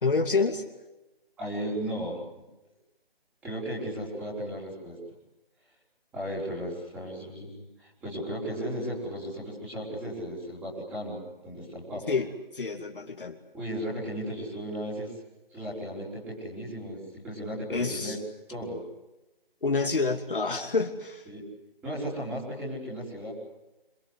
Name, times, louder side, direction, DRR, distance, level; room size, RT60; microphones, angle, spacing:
voice 1, 0.0-0.6 12.1-13.4 17.7-18.2 19.6-21.3, left 4 dB, 60° left, 4 dB, 2.8 m, -28 dB
voice 2, 1.4-2.5 3.4-5.0 6.1-12.1 13.5-15.1 15.5-18.2 18.5-18.8 21.3-21.4 21.8-23.3, equal, 5° right, -8 dB, 4.8 m, -35 dB
27.0 x 24.5 x 8.2 m, 0.98 s
figure-of-eight pair, 170°, 30 cm